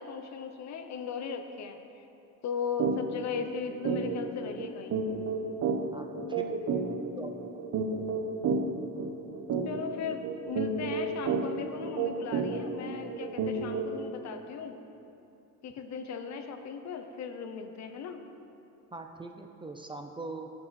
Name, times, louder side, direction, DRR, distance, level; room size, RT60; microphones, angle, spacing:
voice 1, 0.0-2.1 2.4-5.0 9.6-14.8 15.6-18.2, left 6 dB, 55° left, 7 dB, 0.8 m, -37 dB
sound 1, 2.8-3.0 3.3-3.5 3.8-14.1, right 4 dB, 55° right, 1.0 m, -31 dB
voice 2, 5.9-6.5 7.2-7.3 18.9-20.5, right 3 dB, 15° right, 4 dB, 0.4 m, -41 dB
15.0 x 5.7 x 4.1 m, 2.8 s
cardioid pair, 130°, 32 cm